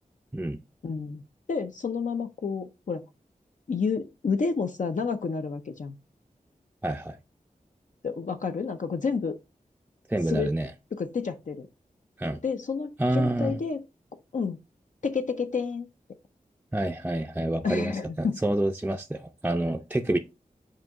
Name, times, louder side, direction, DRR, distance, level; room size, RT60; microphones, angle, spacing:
voice 1, 0.8-1.2 1.5-3.0 3.7-5.9 8.0-9.4 10.3-10.5 10.9-11.7 12.4-13.8 14.3-14.6 15.0-15.9 17.6-18.4, left 5 dB, 60° left, 0.5 m, -30 dB
voice 2, 6.8-7.2 10.1-10.7 12.2-12.4 13.0-13.6 16.7-20.2, right 1 dB, 10° right, 0.4 m, -28 dB
7.6 x 2.8 x 4.6 m
wide cardioid pair, 90°, 14 cm